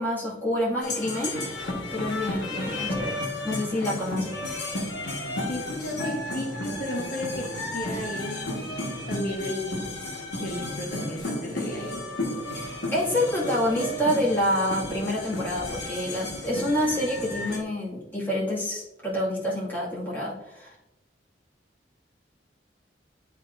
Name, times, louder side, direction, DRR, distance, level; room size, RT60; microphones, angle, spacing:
voice 1, 0.0-3.1 3.4-4.4 12.5-20.7, left 1 dB, 10° left, -8 dB, 2.1 m, -28 dB
sound 1, 0.8-17.6, left 1 dB, 70° left, 1.6 m, -33 dB
voice 2, 5.5-8.6 9.1-9.8 10.4-12.0, left 1 dB, 55° left, -2 dB, 1.2 m, -34 dB
10.5 x 3.8 x 2.6 m, 0.91 s
head